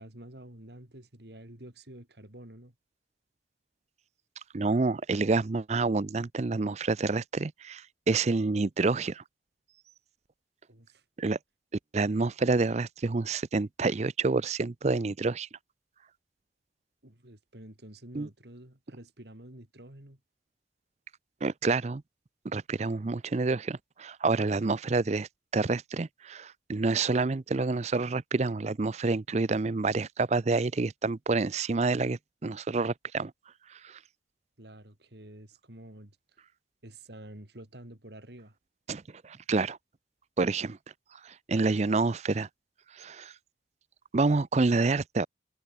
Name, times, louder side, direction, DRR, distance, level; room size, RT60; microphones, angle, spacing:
voice 1, 0.0-2.7 10.7-11.0 17.0-20.2 34.6-36.2 36.8-38.6, right 1 dB, 60° right, 3.1 m, -49 dB
voice 2, 4.5-9.2 11.2-11.4 11.9-15.5 18.1-18.3 21.4-22.0 22.4-33.3 33.7-34.0 38.9-39.8 40.4-40.8 41.2-42.5 42.9-43.3 44.1-45.3, right 3 dB, 35° right, 0.5 m, -28 dB
head